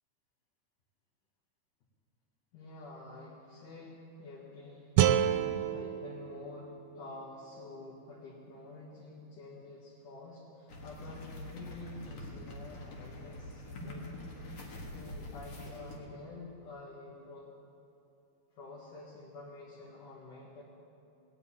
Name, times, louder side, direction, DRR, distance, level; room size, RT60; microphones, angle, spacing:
voice 1, 2.5-4.9 5.5-14.3 14.9-17.5 18.5-20.6, left 2 dB, 75° left, -6 dB, 3.3 m, -48 dB
sound 1, 5.0-8.1, right 10 dB, 85° right, 2.2 m, -30 dB
sound 2, 10.7-16.0, left 1 dB, 55° left, 2.6 m, -45 dB
19.0 x 7.0 x 8.8 m, 2.7 s
omnidirectional pair, 3.7 m